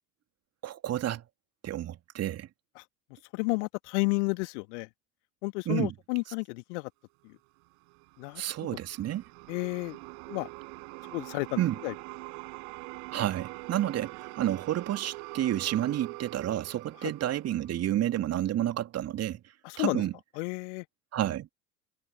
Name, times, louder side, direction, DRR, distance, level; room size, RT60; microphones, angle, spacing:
voice 1, 0.6-1.2 1.6-2.5 5.7-5.9 8.4-9.2 11.6-11.7 13.1-19.4 19.8-20.1 21.1-21.5, right 12 dB, 35° right, 2.9 m, -30 dB
voice 2, 3.3-4.9 5.4-6.9 7.2-7.3 8.2-8.4 9.5-10.0 10.3-10.5 11.1-11.9 17.0-17.1 19.6-20.0 20.4-20.9, left 29 dB, 55° left, 1.8 m, -31 dB
sound 1, 7.9-18.3, right 40 dB or more, 55° right, 5.4 m, -44 dB
figure-of-eight pair, 75°, 42 cm